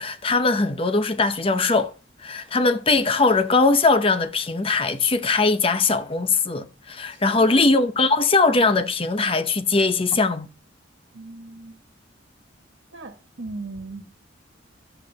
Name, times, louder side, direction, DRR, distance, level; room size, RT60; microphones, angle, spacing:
voice 1, 0.0-1.9 2.2-10.5, left 3 dB, 30° left, 0.7 m, -20 dB
voice 2, 7.1-7.7 11.1-11.8 12.9-14.1, right 2 dB, 70° right, 1.4 m, -38 dB
11.0 x 7.9 x 5.3 m
head